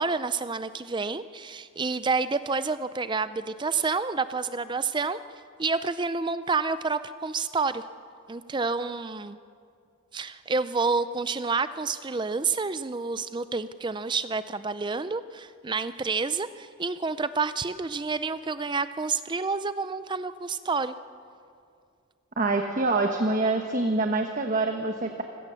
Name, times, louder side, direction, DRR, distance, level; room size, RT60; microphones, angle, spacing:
voice 1, 0.0-5.2 5.6-7.8 8.3-9.4 10.1-20.9, right 4 dB, 20° right, 13 dB, 0.4 m, -29 dB
voice 2, 22.4-25.2, right 2 dB, 40° right, 4 dB, 1.1 m, -25 dB
26.5 x 17.0 x 6.9 m, 2.3 s
head